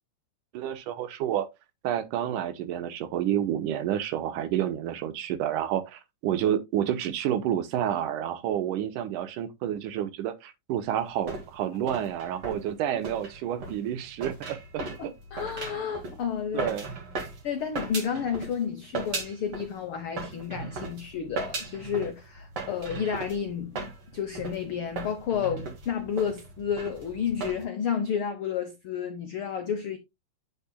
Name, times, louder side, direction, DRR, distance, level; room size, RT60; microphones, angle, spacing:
voice 1, 0.5-1.5 1.8-15.1 16.5-16.9, right 10 dB, 80° right, 2.4 m, -29 dB
sound 1, 11.0-18.6 18.9-19.8 20.1-27.6, right 4 dB, 45° right, 2.6 m, -38 dB
voice 2, 15.0-16.7 17.4-30.0, left 7 dB, 75° left, 1.2 m, -31 dB
8.5 x 8.4 x 2.2 m
omnidirectional pair, 3.7 m